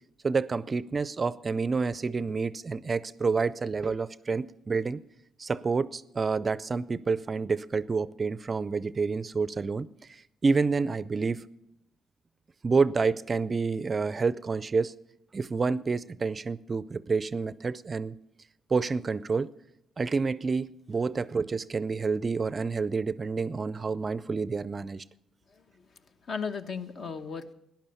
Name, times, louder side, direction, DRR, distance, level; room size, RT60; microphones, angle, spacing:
voice 1, 0.2-5.0 5.4-11.4 12.6-15.0 15.3-18.1 18.7-19.5 20.0-25.0, right 4 dB, 35° right, 0.4 m, -28 dB
voice 2, 25.5-27.5, left 5 dB, 55° left, 1.0 m, -37 dB
13.0 x 10.5 x 6.9 m
cardioid pair, 90°, 0 cm